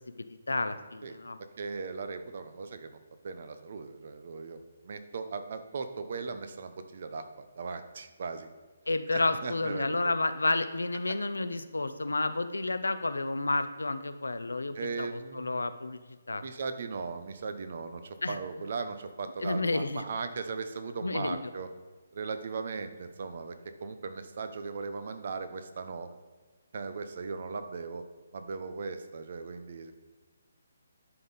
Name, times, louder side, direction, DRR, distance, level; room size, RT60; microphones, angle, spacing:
voice 1, 0.0-1.4 8.9-16.0 16.3-16.4 18.2-18.4 19.4-20.0 21.0-21.5, left 2 dB, 90° left, 11 dB, 0.5 m, -31 dB
voice 2, 1.6-3.0 3.2-8.5 9.1-10.1 11.1-11.2 14.7-15.5 16.4-21.7 22.1-26.1 26.7-28.0 28.3-29.9, right 4 dB, 55° right, 9 dB, 0.7 m, -38 dB
10.5 x 3.8 x 4.0 m, 1.4 s
figure-of-eight pair, 150°, 0 cm